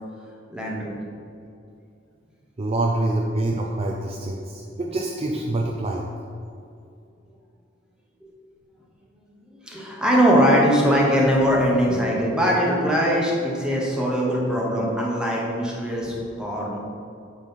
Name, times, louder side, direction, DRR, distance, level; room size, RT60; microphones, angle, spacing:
voice 1, 0.5-1.0 8.2-8.3 9.6-16.8, equal, 5° right, -4 dB, 1.2 m, -21 dB
voice 2, 2.6-6.1, right 2 dB, 30° right, -1 dB, 0.5 m, -26 dB
9.2 x 3.3 x 5.5 m, 2.5 s
head